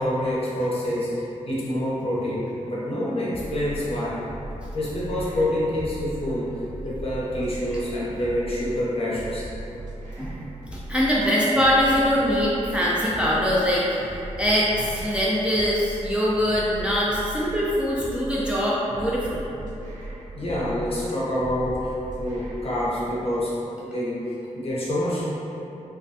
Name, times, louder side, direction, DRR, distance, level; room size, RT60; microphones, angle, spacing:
voice 1, 0.0-4.2 4.7-6.5 6.8-9.5 20.3-21.9 22.2-23.5 23.8-24.2 24.5-25.4, left 1 dB, 50° left, -8 dB, 0.6 m, -27 dB
sound 1, 3.3-22.9, right 1 dB, 80° right, 0.5 m, -38 dB
voice 2, 10.7-19.4, equal, 10° right, -7 dB, 0.3 m, -23 dB
2.3 x 2.2 x 2.5 m, 2.9 s
wide cardioid pair, 125°, 13 cm